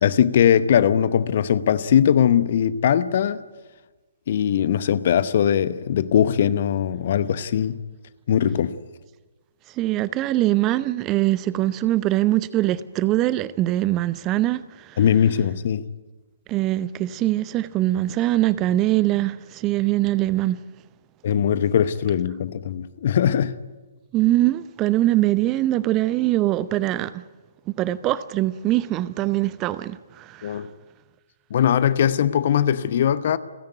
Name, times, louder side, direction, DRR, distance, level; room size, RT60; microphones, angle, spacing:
voice 1, 0.0-3.4 4.3-7.8 8.3-8.8 15.0-15.9 21.2-23.6 30.4-30.7 31.5-33.4, left 9 dB, 45° left, 0.9 m, -20 dB
voice 2, 9.8-15.0 16.5-20.6 24.1-27.2 27.7-30.6, right 15 dB, 25° right, 0.7 m, -22 dB
29.5 x 10.5 x 9.4 m
figure-of-eight pair, 125°, 0 cm